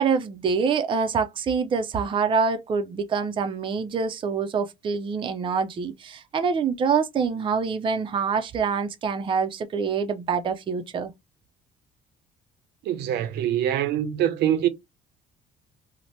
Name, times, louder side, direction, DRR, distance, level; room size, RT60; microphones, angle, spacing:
voice 1, 0.0-11.1, right 5 dB, 30° right, 0.4 m, -25 dB
voice 2, 12.8-14.7, right 11 dB, 80° right, 0.6 m, -24 dB
2.7 x 2.1 x 3.1 m
cardioid pair, 110°, 17 cm